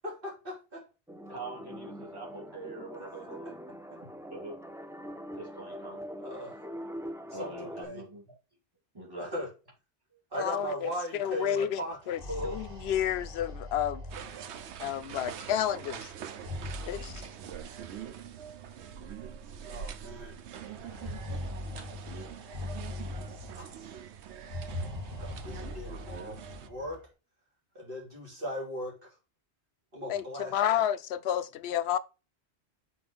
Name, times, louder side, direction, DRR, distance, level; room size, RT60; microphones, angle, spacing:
voice 1, 0.0-0.8 2.8-2.9 3.9-4.0 6.2-6.6 7.3-8.0 9.2-9.5 10.3-12.6 19.7-20.4 23.5-23.9 25.2-27.0 27.7-29.2 29.9-30.8, equal, 50° right, 3.4 m, -38 dB
sound 1, 1.1-7.8, equal, 5° right, 0.4 m, -43 dB
voice 2, 1.3-3.6 4.2-4.7 5.3-6.0 7.3-8.3 8.9-9.5 21.8-21.9 24.6-24.8 25.0-25.1, right 2 dB, 20° right, 2.8 m, -44 dB
voice 3, 10.4-14.0 14.8-16.1 16.8-17.2 30.1-32.0, left 10 dB, 70° left, 0.8 m, -31 dB
sound 2, 12.0-14.8 16.2-17.9 18.9-19.0 19.3-19.4 20.7-23.8 24.4-27.0, left 2 dB, 35° right, 2.8 m, -41 dB
sound 3, 14.1-26.7, right 8 dB, 80° right, 1.0 m, -44 dB
5.9 x 4.3 x 5.2 m
omnidirectional pair, 1.1 m